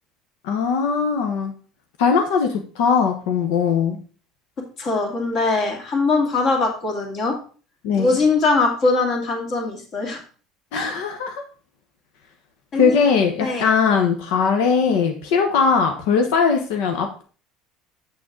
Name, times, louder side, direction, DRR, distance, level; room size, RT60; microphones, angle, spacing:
voice 1, 0.4-1.5 2.0-4.0 7.8-8.1 10.7-11.4 12.7-17.2, left 5 dB, 85° left, 4 dB, 1.0 m, -20 dB
voice 2, 4.8-7.4 8.0-10.2 10.7-10.9 12.7-13.0 13.4-13.7, left 3 dB, 40° left, 2 dB, 2.3 m, -21 dB
7.5 x 6.4 x 3.8 m, 0.39 s
cardioid pair, 145°, 0 cm